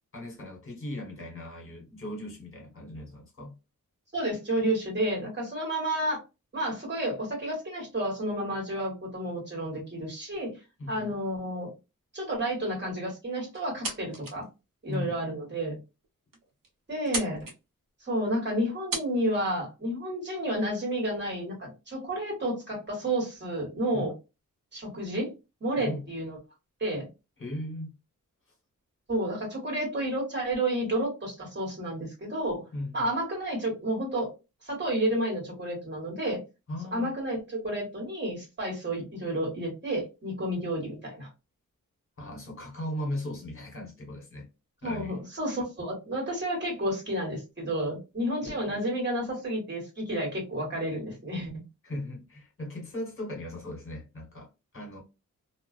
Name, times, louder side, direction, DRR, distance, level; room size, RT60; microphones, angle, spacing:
voice 1, 0.1-3.6 10.8-11.1 14.9-15.2 23.9-24.1 25.8-26.0 27.4-27.9 32.7-33.1 36.7-37.1 42.2-44.5 44.8-45.2 48.4-48.8 51.8-55.0, left 1 dB, 40° left, 1.2 m, -38 dB
voice 2, 4.1-6.2 6.5-10.6 10.9-11.7 12.1-14.4 14.8-15.8 16.9-17.5 18.0-24.1 24.7-25.3 25.6-26.4 26.8-27.1 29.1-32.6 32.9-34.3 34.6-36.4 36.9-41.3 44.8-51.6, right 1 dB, 35° right, 1.4 m, -31 dB
sound 1, 13.5-14.5 14.9-15.0 15.7-15.8 16.0-16.1 16.3-16.7 17.0-17.6 18.5-18.6 18.9-19.1, right 3 dB, 85° right, 0.9 m, -34 dB
2.4 x 2.2 x 2.3 m
wide cardioid pair, 155°, 33 cm